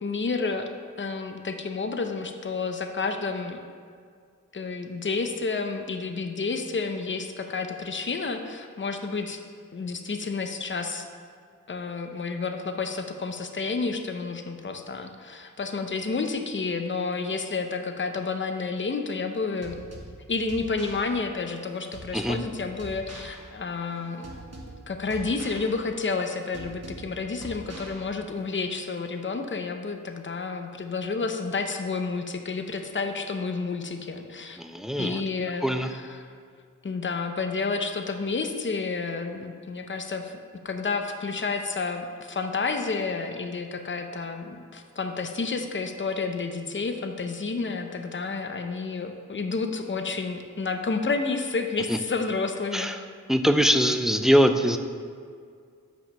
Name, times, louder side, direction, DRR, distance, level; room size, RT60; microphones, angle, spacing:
voice 1, 0.0-0.7 1.0-3.6 4.5-9.4 9.7-11.1 11.7-19.8 20.3-24.2 24.9-34.6 35.0-36.3 36.8-40.4 40.6-52.9, left 4 dB, 35° left, 6 dB, 0.7 m, -30 dB
sound 1, 19.6-28.6, right 2 dB, 50° right, 1.3 m, -44 dB
voice 2, 34.6-35.2 35.6-35.9 51.9-52.0 52.7-52.9 53.3-54.8, equal, ahead, 7 dB, 0.5 m, -22 dB
6.1 x 5.0 x 6.6 m, 2.1 s
cardioid pair, 45°, 33 cm